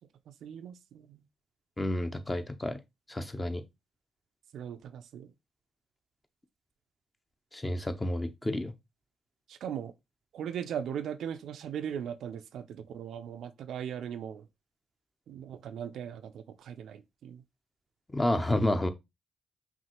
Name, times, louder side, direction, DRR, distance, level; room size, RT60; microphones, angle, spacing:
voice 1, 0.4-1.2 4.5-5.3 9.5-9.9 10.3-14.4 15.3-17.4, right 8 dB, 70° right, 0.3 m, -39 dB
voice 2, 1.8-2.8 3.1-3.6 7.5-8.7 18.1-18.9, left 1 dB, 20° left, 0.7 m, -30 dB
5.6 x 2.4 x 2.9 m
hypercardioid pair, 40°, 0 cm